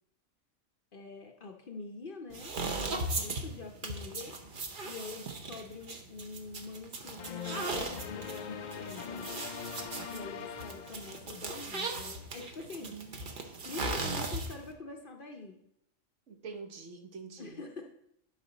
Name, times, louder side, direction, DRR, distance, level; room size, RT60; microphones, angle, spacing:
voice 1, 0.9-4.4 4.8-9.3 10.1-13.1 13.6-15.6 17.4-18.1, left 3 dB, 50° left, 3 dB, 0.8 m, -45 dB
sound 1, 2.3-14.7, right 2 dB, 45° right, 0.9 m, -38 dB
sound 2, 7.2-11.7, left 7 dB, 80° left, 0.4 m, -42 dB
voice 2, 12.8-13.8 16.3-17.6, right 5 dB, 65° right, 5 dB, 1.2 m, -47 dB
11.5 x 4.9 x 4.0 m, 0.78 s
omnidirectional pair, 1.4 m